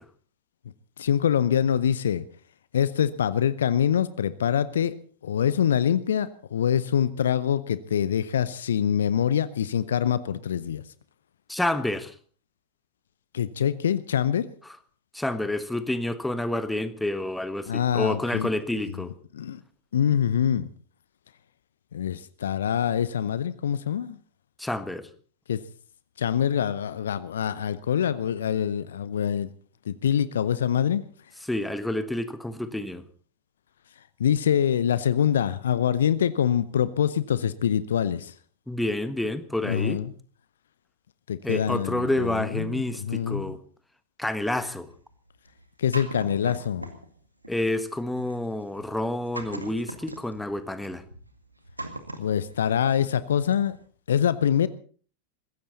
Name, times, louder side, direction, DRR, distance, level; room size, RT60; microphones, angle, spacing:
voice 1, 1.0-2.2 2.7-5.0 5.2-10.8 13.3-14.5 17.7-18.5 19.3-19.6 19.9-20.7 21.9-24.2 25.5-25.6 26.2-29.5 29.9-31.0 34.2-38.3 39.6-40.1 41.3-43.6 45.8-46.9 52.2-53.8 54.1-54.7, left 9 dB, 65° left, 16 dB, 0.7 m, -25 dB
voice 2, 11.5-12.1 15.1-19.1 24.6-25.1 31.5-33.0 38.7-40.0 41.4-43.6 44.2-44.9 47.5-51.0, left 1 dB, 5° left, 12 dB, 1.5 m, -29 dB
Breaking concrete, 44.9-47.1 47.4-53.2 53.5-53.8, right 1 dB, 85° right, 2.1 m, -40 dB
21.0 x 16.0 x 4.1 m, 0.42 s
figure-of-eight pair, 90°, 0 cm